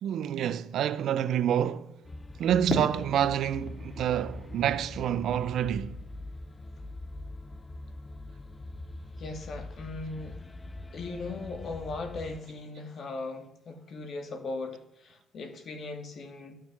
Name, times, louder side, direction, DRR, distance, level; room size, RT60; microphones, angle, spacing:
voice 1, 0.0-1.9 2.4-6.0, right 10 dB, 75° right, 0.7 m, -28 dB
sound 1, 2.0-12.4, left 2 dB, 20° left, 0.6 m, -43 dB
Fireworks, 2.7-5.7, left 2 dB, 40° left, 3.0 m, -37 dB
voice 2, 9.2-10.4 10.9-16.6, left 3 dB, 55° left, 2.4 m, -38 dB
12.0 x 6.8 x 7.3 m
cardioid pair, 90°, 0 cm